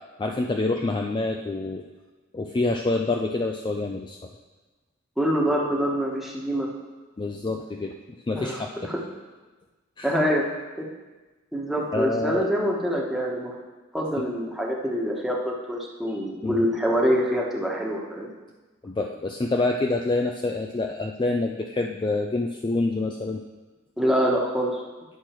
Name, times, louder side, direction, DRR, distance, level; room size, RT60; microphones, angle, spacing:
voice 1, 0.2-1.8 2.3-4.2 7.2-7.9 8.3-8.9 10.0-10.1 11.9-12.5 16.4-16.6 18.8-23.4, left 2 dB, 25° left, 3 dB, 0.4 m, -27 dB
voice 2, 5.2-6.7 8.3-9.0 10.0-10.5 10.8-10.9 11.5-13.6 13.9-18.3 24.0-24.7, equal, ahead, -3 dB, 1.2 m, -25 dB
10.0 x 6.2 x 4.5 m, 1.2 s
head